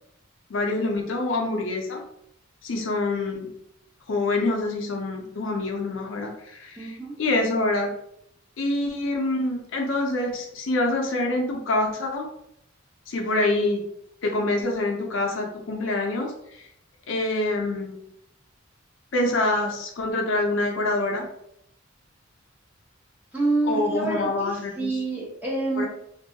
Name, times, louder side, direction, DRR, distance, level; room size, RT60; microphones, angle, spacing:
voice 1, 0.5-2.0 2.6-3.5 4.1-7.9 8.6-12.3 13.1-13.8 14.2-16.7 17.1-18.0 19.1-21.2 23.6-25.0 25.8-25.9, left 2 dB, 70° left, 1 dB, 0.5 m, -26 dB
voice 2, 6.8-7.1 23.3-25.9, right 2 dB, 10° right, -5 dB, 0.8 m, -27 dB
2.6 x 2.2 x 2.7 m, 0.75 s
head